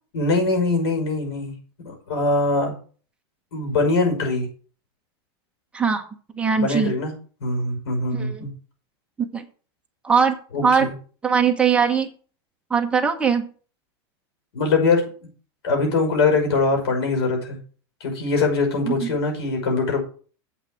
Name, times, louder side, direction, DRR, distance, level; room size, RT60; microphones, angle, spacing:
voice 1, 0.1-1.5 1.8-2.7 3.5-4.5 6.6-7.1 7.4-8.5 10.5-10.9 14.5-15.0 15.6-17.6 18.0-20.0, left 3 dB, 80° left, 2 dB, 5.7 m, -22 dB
voice 2, 6.3-6.9 8.1-8.5 9.3-9.5 10.0-10.9 11.2-12.1 12.7-13.5 18.8-19.1, right 6 dB, 10° right, 4 dB, 1.1 m, -21 dB
8.1 x 5.7 x 7.6 m, 0.41 s
supercardioid pair, 155°, 13 cm